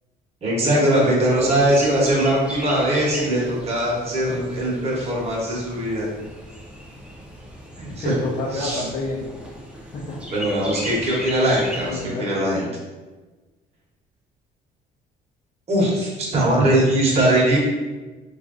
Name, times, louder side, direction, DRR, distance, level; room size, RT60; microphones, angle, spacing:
voice 1, 0.4-6.1 7.8-8.1 8.5-8.9 10.3-12.7 15.7-17.6, right 1 dB, 40° right, -4 dB, 0.9 m, -21 dB
Chirp tweet, 1.2-12.0, equal, 5° right, 0.6 m, -37 dB
voice 2, 1.3-2.1 7.9-9.2 9.7-10.4 11.9-12.3, left 3 dB, 45° left, -6 dB, 0.6 m, -29 dB
3.1 x 2.4 x 2.5 m, 1.2 s
cardioid pair, 110°, 17 cm